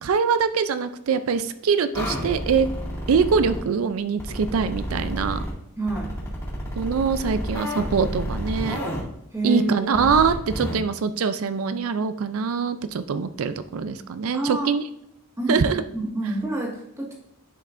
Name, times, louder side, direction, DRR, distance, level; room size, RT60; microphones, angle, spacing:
voice 1, 0.0-2.7 3.1-5.4 6.8-8.8 9.4-14.8 15.5-15.8, right 5 dB, 80° right, 11 dB, 0.4 m, -23 dB
sound 1, 1.9-3.6 4.2-5.5 5.9-9.0 9.9-10.8, equal, 15° left, 2.0 m, -30 dB
voice 2, 5.8-6.1 9.3-10.1 14.3-14.7 15.4-17.1, right 2 dB, 15° right, -2 dB, 1.7 m, -27 dB
10.5 x 5.4 x 2.5 m, 0.76 s
head